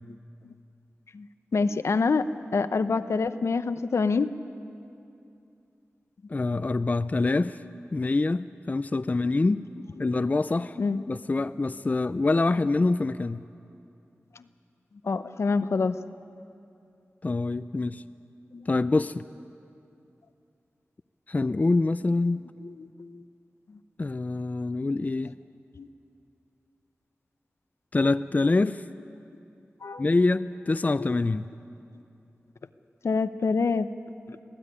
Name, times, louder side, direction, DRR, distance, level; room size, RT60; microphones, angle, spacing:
voice 1, 1.5-4.4 10.8-11.0 15.0-16.0 18.5-18.7 22.6-23.2 25.8-25.9 29.8-30.0 31.0-31.1 31.9-32.0 33.0-33.9 34.3-34.4, left 4 dB, 80° left, 11 dB, 0.8 m, -26 dB
voice 2, 6.3-7.6 7.9-9.6 10.0-10.8 11.1-13.4 17.2-18.0 18.7-19.2 21.3-22.4 24.0-25.4 27.9-28.8 30.0-31.5, left 3 dB, 35° left, 13 dB, 0.4 m, -25 dB
24.5 x 16.0 x 9.9 m, 2.6 s
wide cardioid pair, 80°, 5 cm